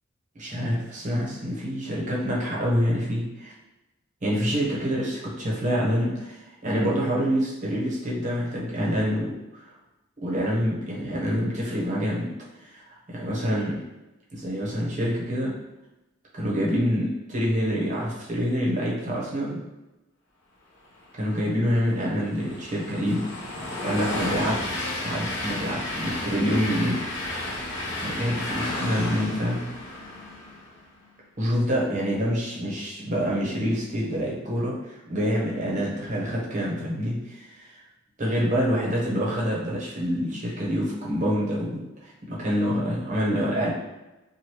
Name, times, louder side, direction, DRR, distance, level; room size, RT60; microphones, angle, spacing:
voice 1, 0.3-3.5 4.2-9.7 10.2-13.8 14.3-15.5 16.3-19.6 21.2-23.4 23.8-24.6 25.0-27.0 28.0-29.7 31.4-37.8 38.2-43.7, equal, 35° right, -5 dB, 0.8 m, -26 dB
Train, 21.4-30.8, left 1 dB, 60° left, 0.7 m, -32 dB
3.0 x 2.5 x 2.9 m, 1.0 s
head